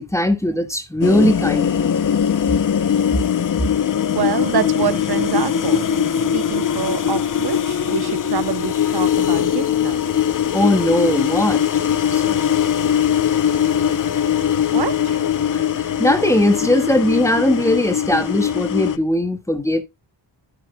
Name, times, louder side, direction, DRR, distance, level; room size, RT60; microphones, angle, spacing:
voice 1, 0.0-2.0 3.1-3.2 10.5-11.6 12.1-12.4 15.5-19.8, left 1 dB, 5° left, 1.7 m, -19 dB
sound 1, 1.0-19.0, left 9 dB, 45° left, 0.7 m, -20 dB
voice 2, 4.1-5.9 6.1-10.0 14.7-15.2, right 8 dB, 55° right, 0.8 m, -26 dB
11.5 x 9.6 x 2.2 m
wide cardioid pair, 105°, 45 cm